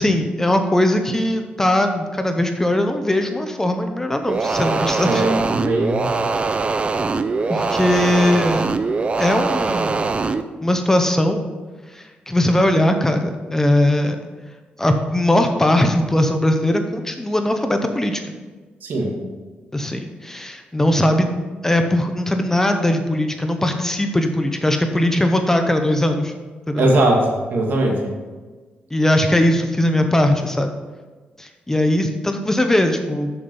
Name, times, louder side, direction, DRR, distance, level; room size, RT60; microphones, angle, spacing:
voice 1, 0.0-5.2 7.5-8.8 9.2-10.1 10.6-11.5 11.9-14.2 14.8-18.3 19.7-21.3 21.6-26.3 26.7-26.9 28.9-30.7 31.4-33.4, left 1 dB, 15° left, 6 dB, 0.8 m, -19 dB
sound 1, 4.3-10.4, right 4 dB, 35° right, 0.5 m, -22 dB
voice 2, 5.1-6.1 18.8-19.1 26.8-28.0, right 1 dB, 65° right, 0 dB, 2.0 m, -19 dB
7.2 x 7.0 x 5.4 m, 1.3 s
cardioid pair, 100°, 4 cm